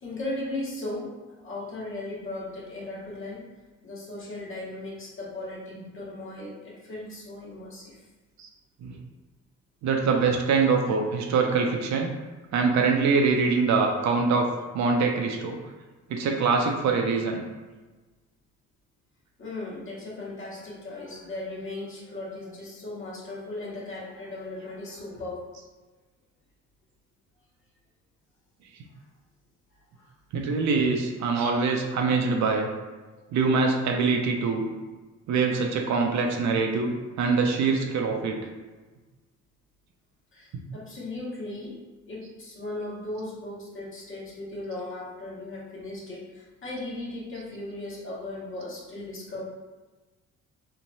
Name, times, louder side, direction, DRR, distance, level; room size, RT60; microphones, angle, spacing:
voice 1, 0.0-3.4 3.8-8.1 19.4-25.4 29.9-30.1 40.3-41.8 42.1-49.4, left 2 dB, 45° left, -5 dB, 1.1 m, -37 dB
voice 2, 9.8-12.1 12.5-14.5 14.7-15.6 16.1-17.4 30.3-32.7 33.3-34.7 35.3-36.9 37.2-38.5, right 4 dB, 65° right, 2 dB, 0.5 m, -24 dB
3.1 x 2.1 x 2.6 m, 1.3 s
cardioid pair, 90°, 30 cm